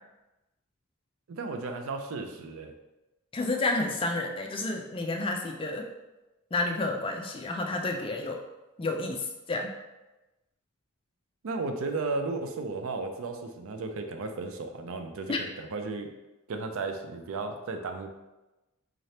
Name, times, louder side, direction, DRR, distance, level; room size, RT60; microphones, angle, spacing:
voice 1, 1.3-2.7 11.4-16.1 16.5-18.1, right 3 dB, 65° right, 6 dB, 0.4 m, -34 dB
voice 2, 3.3-5.9 6.5-8.4 8.8-9.7 15.3-15.4, left 2 dB, 25° left, 3 dB, 0.3 m, -30 dB
3.7 x 3.2 x 2.8 m, 1.0 s
head